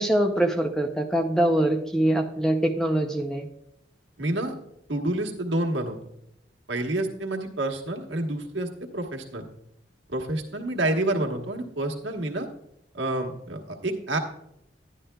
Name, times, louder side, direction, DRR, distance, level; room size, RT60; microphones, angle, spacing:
voice 1, 0.0-3.5, right 1 dB, 5° left, 4 dB, 0.5 m, -23 dB
voice 2, 4.2-4.5 4.9-6.0 6.7-8.7 8.9-9.4 10.1-12.5 12.9-14.2, right 1 dB, 75° right, 2 dB, 1.2 m, -28 dB
11.5 x 10.5 x 2.2 m, 0.77 s
head